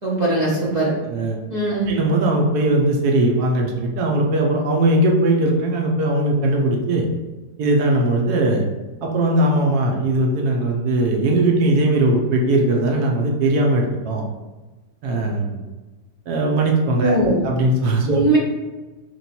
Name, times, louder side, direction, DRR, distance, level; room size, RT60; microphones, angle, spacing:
voice 1, 0.0-0.9 1.5-1.9 17.0-17.4 18.1-18.4, right 2 dB, 50° right, -7 dB, 0.5 m, -20 dB
voice 2, 1.9-7.1 7.6-8.6 9.0-14.3 15.0-15.6 16.3-17.2 17.4-18.2, right 1 dB, 70° right, 0 dB, 1.0 m, -19 dB
3.0 x 2.9 x 4.1 m, 1.2 s
omnidirectional pair, 2.0 m